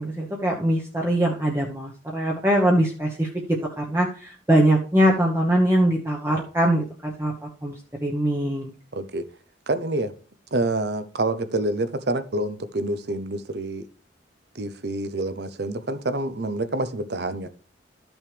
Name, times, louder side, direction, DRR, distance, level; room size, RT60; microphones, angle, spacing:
voice 1, 0.0-7.7 8.0-8.7, right 1 dB, 15° right, 1.0 m, -22 dB
voice 2, 8.9-9.2 9.7-10.1 10.5-13.8 14.5-17.5, right 2 dB, 60° right, 0.7 m, -27 dB
12.5 x 6.2 x 3.3 m
head